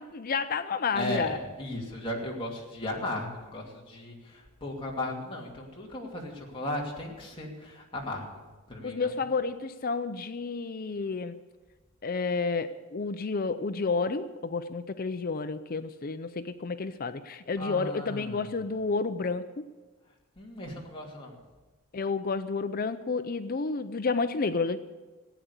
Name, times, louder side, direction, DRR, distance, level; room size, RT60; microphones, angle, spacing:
voice 1, 0.0-1.4 8.8-11.4 12.0-19.6 21.9-24.8, left 4 dB, 40° left, 11 dB, 0.5 m, -30 dB
voice 2, 0.9-8.4 8.7-9.1 17.6-18.5 20.4-21.4, left 1 dB, 25° left, -2 dB, 2.7 m, -36 dB
16.0 x 9.2 x 8.1 m, 1.3 s
head